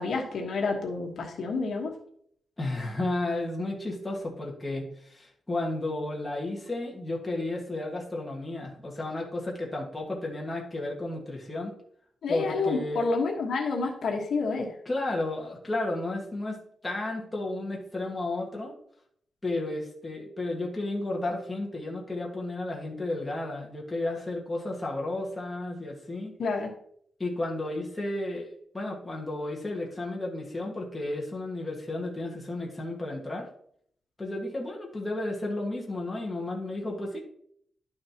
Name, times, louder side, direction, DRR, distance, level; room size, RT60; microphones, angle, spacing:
voice 1, 0.0-1.9 12.2-14.7 26.4-26.7, left 4 dB, 65° left, 1 dB, 1.3 m, -29 dB
voice 2, 2.6-11.7 12.3-13.0 14.8-18.7 19.4-26.3 27.2-33.5 34.2-37.2, left 2 dB, 15° left, -2 dB, 1.7 m, -33 dB
11.0 x 6.5 x 2.9 m, 0.66 s
wide cardioid pair, 170°, 0 cm